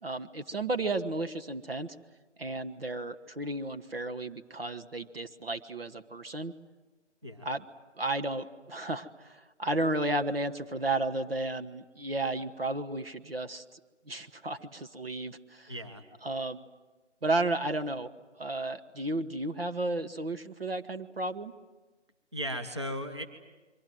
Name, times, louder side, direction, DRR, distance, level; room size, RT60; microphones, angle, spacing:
voice 1, 0.0-2.0 2.4-6.5 7.4-7.6 8.0-13.8 14.1-15.7 16.2-16.6 17.2-18.1 18.4-21.5, right 2 dB, 55° right, 8 dB, 1.3 m, -33 dB
voice 2, 15.7-16.0 22.3-23.3, equal, 25° right, 6 dB, 1.2 m, -36 dB
28.5 x 23.5 x 7.7 m, 1.2 s
figure-of-eight pair, 180°, 36 cm